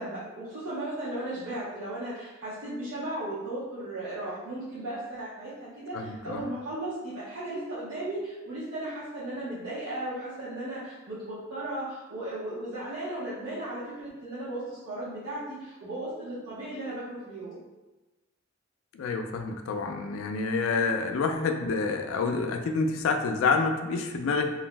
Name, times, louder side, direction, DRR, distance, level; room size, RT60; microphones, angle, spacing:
voice 1, 0.0-17.6, right 1 dB, 75° right, -12 dB, 0.8 m, -36 dB
voice 2, 5.9-6.4 18.9-24.5, left 4 dB, 75° left, 5 dB, 0.3 m, -28 dB
2.5 x 2.0 x 3.2 m, 1.1 s
head